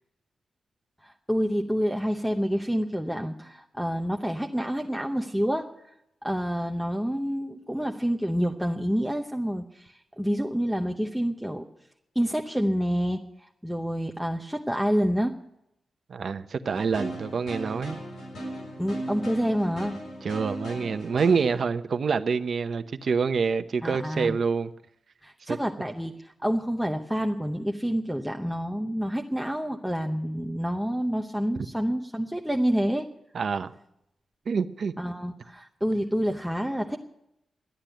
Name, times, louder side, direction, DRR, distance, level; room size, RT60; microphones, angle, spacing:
voice 1, 1.0-5.7 6.2-11.6 12.1-15.3 18.8-20.0 23.8-24.4 25.2-33.1 35.0-37.0, equal, ahead, 0.8 m, -28 dB
voice 2, 16.1-18.0 20.2-24.7 25.5-25.6 33.3-33.7 34.5-34.9, right 5 dB, 55° right, 0.8 m, -26 dB
sound 1, 16.6-21.6, right 1 dB, 85° left, 6.8 m, -37 dB
13.0 x 10.5 x 9.1 m
wide cardioid pair, 150°, 0 cm